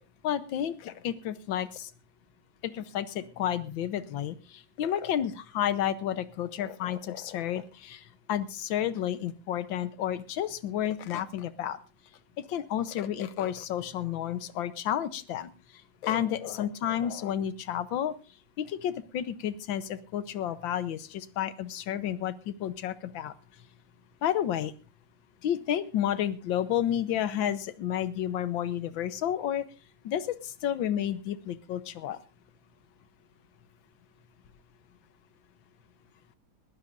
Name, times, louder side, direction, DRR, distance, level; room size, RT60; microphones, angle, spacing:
voice 1, 0.2-1.9 2.6-8.0 8.3-11.8 12.4-15.5 16.0-18.1 18.6-23.3 24.2-24.7 25.4-29.6 30.0-32.2, left 10 dB, 90° left, 14 dB, 1.6 m, -31 dB
21.0 x 15.0 x 2.6 m, 0.31 s
omnidirectional pair, 2.0 m